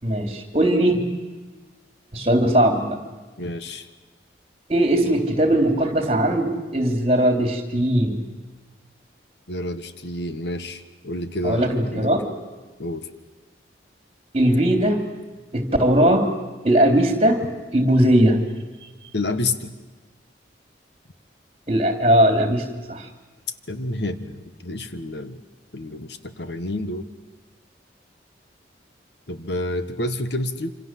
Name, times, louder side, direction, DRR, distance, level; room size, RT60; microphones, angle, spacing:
voice 1, 0.0-1.0 2.1-3.0 4.7-8.2 11.4-12.3 14.3-15.0 15.5-16.3 16.6-17.4 17.7-18.4 21.7-23.1, right 1 dB, 35° right, 6 dB, 3.5 m, -19 dB
voice 2, 3.4-3.9 9.5-12.1 12.8-13.1 19.1-19.7 23.7-25.4 25.7-27.1 29.3-30.7, left 1 dB, 65° left, 11 dB, 1.6 m, -29 dB
27.0 x 26.5 x 7.7 m, 1.3 s
head